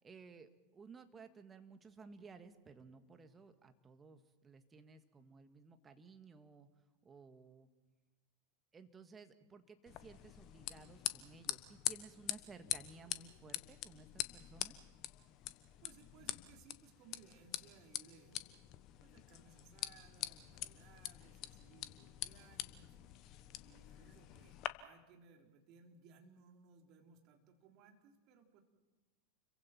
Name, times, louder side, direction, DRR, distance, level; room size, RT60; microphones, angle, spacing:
voice 1, 0.0-6.7 7.0-7.7 8.7-14.8, right 4 dB, 20° right, 8 dB, 1.9 m, -57 dB
sound 1, 9.9-24.7, left 14 dB, 45° left, 1.2 m, -45 dB
voice 2, 15.8-18.4 19.0-23.0 23.6-28.6, right 5 dB, 50° right, 2 dB, 3.7 m, -63 dB
29.5 x 23.0 x 4.5 m, 1.2 s
figure-of-eight pair, 90°, 0 cm